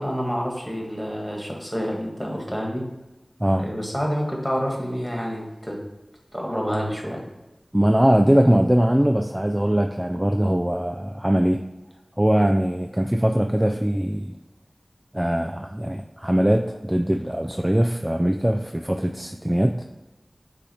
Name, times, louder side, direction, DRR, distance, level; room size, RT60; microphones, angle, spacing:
voice 1, 0.0-2.8 3.6-5.8 6.3-7.2, equal, 5° left, -1 dB, 1.5 m, -28 dB
voice 2, 7.7-11.6 12.2-14.3 15.1-19.8, equal, 15° right, 5 dB, 0.3 m, -21 dB
8.1 x 2.8 x 4.2 m, 1.0 s
wide cardioid pair, 45°, 0 cm